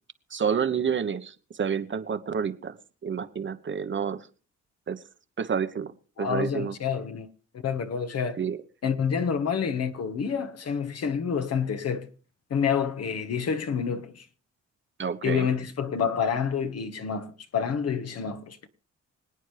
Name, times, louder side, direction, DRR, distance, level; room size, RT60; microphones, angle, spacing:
voice 1, 0.3-2.8 3.0-4.2 4.9-5.0 5.4-5.9 6.2-6.7 8.4-8.6 15.0-15.5, right 7 dB, 40° right, 1.1 m, -29 dB
voice 2, 6.2-7.3 7.5-8.4 8.8-12.1 12.5-14.2 15.2-18.7, left 7 dB, 55° left, 1.5 m, -28 dB
25.5 x 9.0 x 3.3 m
cardioid pair, 90°, 30 cm